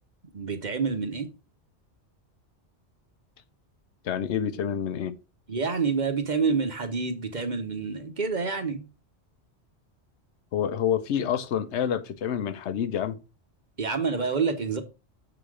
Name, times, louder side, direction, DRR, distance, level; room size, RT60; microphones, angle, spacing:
voice 1, 0.3-1.3 5.5-8.8 13.8-14.8, right 5 dB, 45° right, 1.1 m, -27 dB
voice 2, 4.0-5.2 10.5-13.2, left 9 dB, 80° left, 0.9 m, -28 dB
6.9 x 4.0 x 4.8 m
omnidirectional pair, 1.2 m